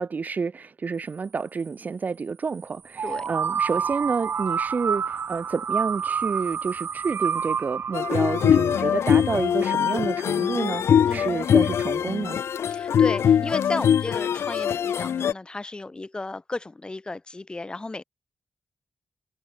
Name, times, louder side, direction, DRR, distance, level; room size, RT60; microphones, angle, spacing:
voice 1, 0.0-12.4, right 5 dB, 40° right, 1.1 m, -29 dB
sound 1, 2.9-9.7, right 7 dB, 55° right, 2.4 m, -29 dB
sound 2, 7.9-15.3, left 8 dB, 70° left, 0.7 m, -22 dB
voice 2, 11.0-11.4 12.7-18.0, left 2 dB, 20° left, 4.9 m, -34 dB
wide cardioid pair, 135°, 4 cm